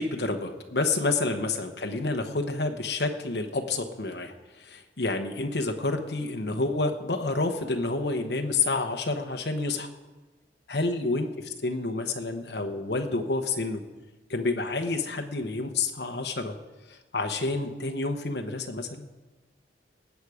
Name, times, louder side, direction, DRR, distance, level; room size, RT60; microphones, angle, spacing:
voice 1, 0.0-9.9 10.7-13.8 14.3-16.5 16.9-19.0, left 3 dB, 65° left, 4 dB, 0.9 m, -29 dB
19.0 x 8.2 x 4.9 m, 1.2 s
head